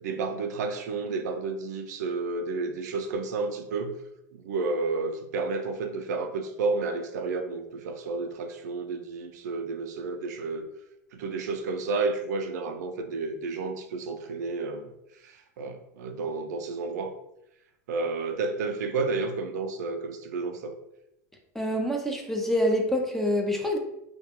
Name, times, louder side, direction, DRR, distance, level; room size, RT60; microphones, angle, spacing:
voice 1, 0.0-4.0 4.3-10.7 11.1-14.9 15.2-17.1 17.9-20.7, right 3 dB, 90° right, 6 dB, 0.4 m, -31 dB
voice 2, 21.6-23.8, equal, 5° left, 1 dB, 0.3 m, -26 dB
2.2 x 2.2 x 2.8 m, 0.82 s
supercardioid pair, 135°, 9 cm